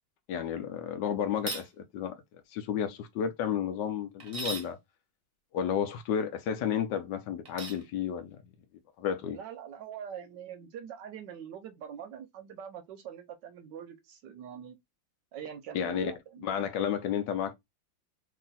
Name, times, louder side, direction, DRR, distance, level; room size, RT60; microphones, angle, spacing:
voice 1, 0.3-2.2 2.5-4.8 5.5-8.4 9.0-9.4 15.7-16.1 16.4-17.5, left 8 dB, 70° left, 1.1 m, -32 dB
sound 1, 1.3-1.7 4.2-4.7 7.4-7.8, right 3 dB, 45° right, 0.8 m, -37 dB
voice 2, 9.3-14.8 15.3-16.7, right 8 dB, 75° right, 1.1 m, -44 dB
3.1 x 2.7 x 3.9 m
omnidirectional pair, 2.1 m